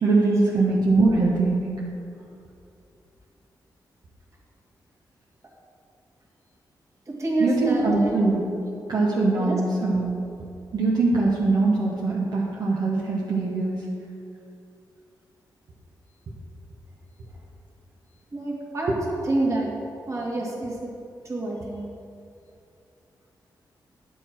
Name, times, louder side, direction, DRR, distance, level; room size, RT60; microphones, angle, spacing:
voice 1, 0.0-1.8 7.4-8.4 8.9-10.2 10.7-13.8, right 3 dB, 65° right, -5 dB, 1.3 m, -22 dB
voice 2, 7.1-8.2 9.4-9.6 18.3-19.7 20.1-20.9 21.2-21.9, right 2 dB, 40° right, -3 dB, 2.2 m, -28 dB
10.0 x 7.0 x 4.6 m, 2.6 s
wide cardioid pair, 100°, 8 cm